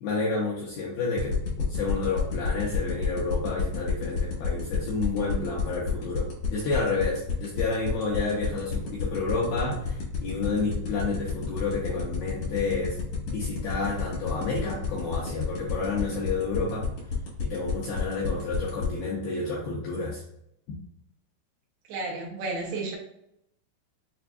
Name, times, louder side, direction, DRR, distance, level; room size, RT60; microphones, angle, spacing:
voice 1, 0.0-16.9 17.4-20.2 20.7-20.8, left 3 dB, 90° left, -5 dB, 2.2 m, -30 dB
sound 1, 1.2-18.8, left 6 dB, 70° left, 1.7 m, -31 dB
voice 2, 21.9-23.0, right 3 dB, 80° right, -1 dB, 2.7 m, -32 dB
6.8 x 2.5 x 2.2 m, 0.78 s
omnidirectional pair, 5.1 m